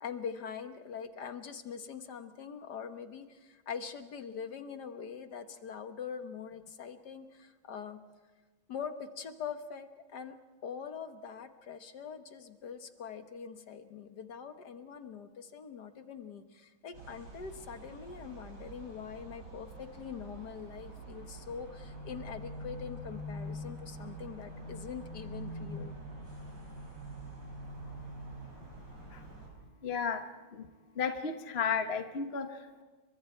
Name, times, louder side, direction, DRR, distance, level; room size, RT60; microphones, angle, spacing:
voice 1, 0.0-8.0 8.7-10.4 10.6-25.9, left 7 dB, 55° left, 8 dB, 1.9 m, -43 dB
sound 1, 16.9-29.5, right 1 dB, 55° right, 6.7 m, -45 dB
voice 2, 29.8-30.2 30.5-30.7 31.0-32.8, left 6 dB, 35° left, 7 dB, 1.2 m, -33 dB
30.0 x 24.0 x 4.6 m, 1.3 s
omnidirectional pair, 2.2 m